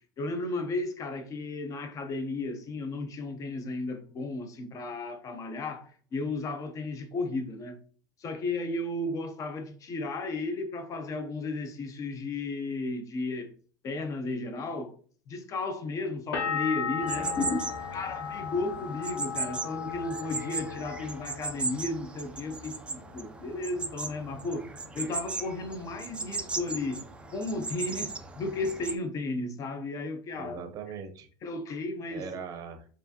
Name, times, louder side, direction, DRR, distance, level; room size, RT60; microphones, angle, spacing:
voice 1, 0.2-7.8 8.2-13.5 13.8-15.0 15.3-17.6 17.9-24.7 24.9-27.0 27.3-30.6 31.4-32.2, left 2 dB, 30° left, 0.6 m, -34 dB
sound 1, 16.3-22.0 22.3-23.0, left 7 dB, 80° left, 0.9 m, -36 dB
sound 2, 17.0-28.9, right 3 dB, 10° right, 0.3 m, -37 dB
voice 2, 17.2-17.5 30.3-31.3 32.1-32.9, right 5 dB, 35° right, 0.7 m, -40 dB
4.6 x 2.5 x 2.7 m
supercardioid pair, 135°, 11 cm